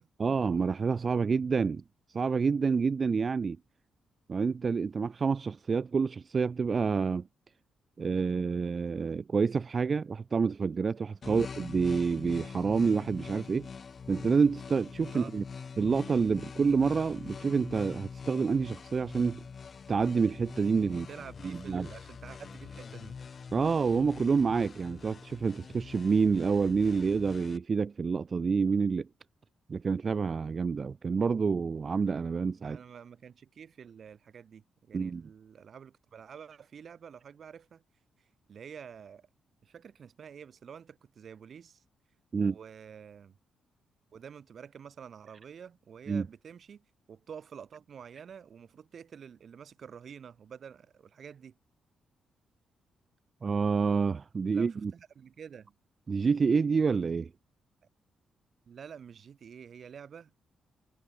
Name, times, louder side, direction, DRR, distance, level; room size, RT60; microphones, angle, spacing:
voice 1, 0.2-1.8 2.1-3.6 4.3-7.3 8.0-13.7 14.1-15.4 15.8-19.4 19.9-21.1 21.4-21.9 23.5-29.1 29.7-32.8 34.9-35.3 42.3-42.6 46.1-46.3 53.4-54.9 56.1-57.3, right 5 dB, 35° right, 1.3 m, -28 dB
sound 1, 11.2-27.6, left 5 dB, 40° left, 1.1 m, -44 dB
voice 2, 20.9-23.1 32.6-37.8 38.5-39.3 39.6-41.8 42.4-43.3 44.1-51.6 54.5-55.7 58.7-60.4, right 7 dB, 50° right, 3.2 m, -48 dB
cardioid pair, 120°, 0 cm